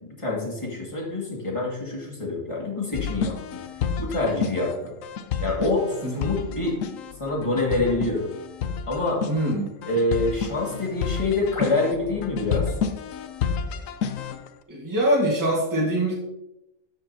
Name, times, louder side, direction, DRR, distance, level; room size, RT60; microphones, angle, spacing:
voice 1, 0.0-3.6 4.0-4.9 5.4-6.8 7.2-8.3 8.9-9.2 9.9-12.7, left 2 dB, 25° left, -2 dB, 2.3 m, -26 dB
sound 1, 2.9-14.5, left 6 dB, 90° left, 1.1 m, -30 dB
voice 2, 9.3-9.7 14.7-16.1, right 1 dB, 15° right, -3 dB, 1.9 m, -23 dB
13.0 x 6.9 x 2.9 m, 0.90 s
omnidirectional pair, 1.3 m